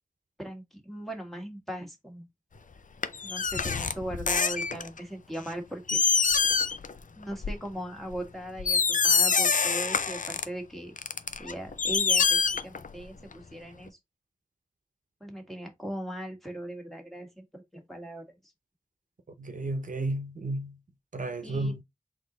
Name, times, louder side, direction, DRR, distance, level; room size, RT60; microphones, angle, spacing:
voice 1, 0.4-2.3 3.2-6.0 7.2-10.9 11.4-14.0 15.2-18.2 21.4-21.8, right 1 dB, ahead, 1.6 m, -39 dB
sound 1, 3.0-5.0 5.5-5.6 5.9-6.9 7.2-7.5 8.1-8.2 8.6-10.4 11.0-13.0 13.3-13.4, left 5 dB, 70° left, 0.5 m, -25 dB
voice 2, 19.4-20.8 21.1-21.8, right 2 dB, 70° right, 0.7 m, -32 dB
3.9 x 3.0 x 4.0 m
wide cardioid pair, 55°, 14 cm